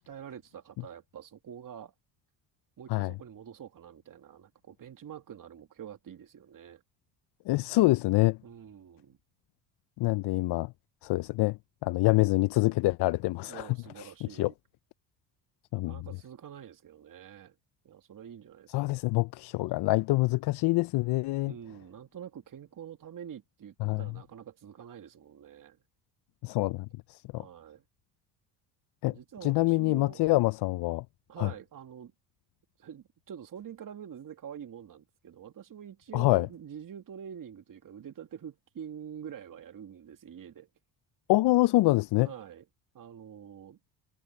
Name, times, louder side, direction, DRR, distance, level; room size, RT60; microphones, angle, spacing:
voice 1, 0.0-1.9 2.8-6.8 8.4-9.2 13.5-14.5 15.7-17.6 17.8-18.9 21.5-25.8 27.3-27.8 29.1-30.3 31.3-32.1 32.8-40.7 42.2-42.7 42.9-43.8, right 8 dB, 45° right, 2.3 m, -46 dB
voice 2, 7.5-8.4 10.0-10.7 11.0-13.7 14.0-14.5 15.7-16.0 18.7-21.5 23.8-24.0 26.4-27.4 29.0-29.2 29.4-31.0 31.4-31.5 36.1-36.5 41.3-42.3, left 20 dB, 60° left, 0.7 m, -26 dB
supercardioid pair, 65°, 45 cm